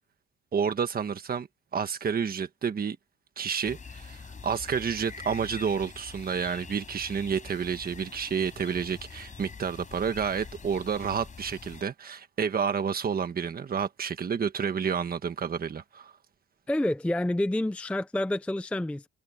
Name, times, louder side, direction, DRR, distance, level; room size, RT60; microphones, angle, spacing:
voice 1, 0.5-1.5 1.7-3.0 3.4-16.1, right 6 dB, 30° right, 1.4 m, -30 dB
sound 1, 3.6-11.8, left 5 dB, 25° left, 4.7 m, -45 dB
voice 2, 16.7-19.1, left 1 dB, 5° left, 0.5 m, -28 dB
cardioid pair, 165°, 29 cm